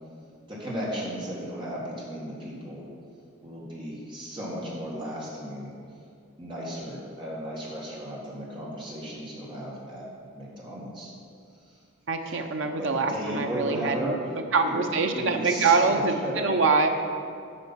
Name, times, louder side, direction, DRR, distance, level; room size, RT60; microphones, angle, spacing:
voice 1, 0.5-2.9 3.4-5.7 6.4-10.1 10.3-11.1 12.3-12.4 12.8-14.1 14.6-14.8 15.1-16.5, equal, 25° right, -6 dB, 1.9 m, -35 dB
voice 2, 12.1-16.9, right 4 dB, 70° right, 5 dB, 0.6 m, -24 dB
8.6 x 5.4 x 5.7 m, 2.3 s
head